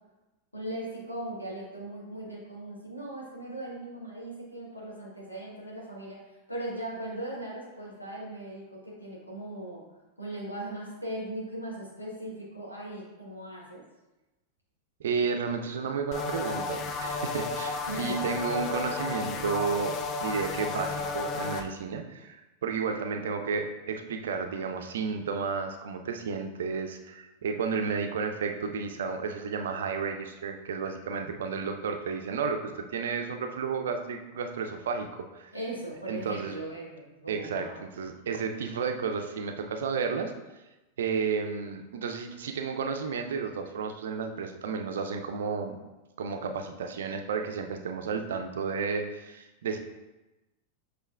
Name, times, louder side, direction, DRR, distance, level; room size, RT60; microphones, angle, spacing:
voice 1, 0.5-9.8 10.2-13.8 17.9-18.2 35.5-37.8, right 1 dB, 85° left, -5 dB, 1.2 m, -39 dB
voice 2, 15.0-35.1 35.3-35.5 36.1-36.5 37.3-40.3 41.0-45.8 46.2-49.8, right 5 dB, 60° right, 5 dB, 0.4 m, -32 dB
sound 1, 16.1-21.6, left 3 dB, 35° left, 0.4 m, -33 dB
7.3 x 3.1 x 2.3 m, 1.0 s
figure-of-eight pair, 90°, 0 cm